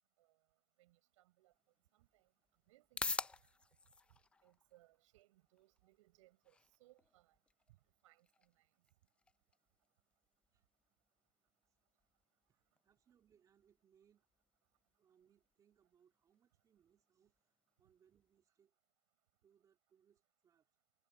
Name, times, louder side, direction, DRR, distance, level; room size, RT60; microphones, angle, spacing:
voice 1, 0.8-1.5 1.9-2.3 2.7-3.5 4.1-7.4 7.7-7.8 8.0-8.7, right 18 dB, 55° right, 6.4 m, -70 dB
sound 1, 1.5-18.5, left 4 dB, 5° left, 0.4 m, -52 dB
voice 2, 12.5-14.3 14.9-18.7 19.4-20.7, right 8 dB, 20° right, 2.7 m, -74 dB
supercardioid pair, 155°, 19 cm